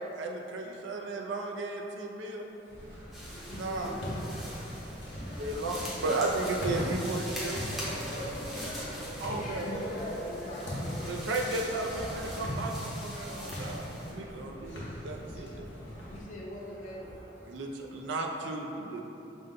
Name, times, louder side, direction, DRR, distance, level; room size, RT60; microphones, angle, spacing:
voice 1, 0.0-2.5 3.5-4.0 5.3-7.6 9.2-9.7 11.0-15.6 17.5-19.1, right 2 dB, 85° right, 1 dB, 0.4 m, -34 dB
sound 1, 2.6-13.0 13.3-14.2 14.8-18.0, equal, 60° right, 1.1 m, -49 dB
sound 2, 2.7-16.2, equal, 70° left, 0.9 m, -40 dB
sound 3, 3.1-14.1, equal, ahead, 0.6 m, -43 dB
voice 2, 3.3-4.2 4.8-5.0 5.3-5.4 9.3-11.7 15.5-15.6 16.1-17.4, left 1 dB, 45° left, -4 dB, 0.6 m, -42 dB
voice 3, 6.1-9.0, right 1 dB, 45° right, -7 dB, 0.8 m, -46 dB
5.0 x 2.1 x 3.8 m, 3.0 s
head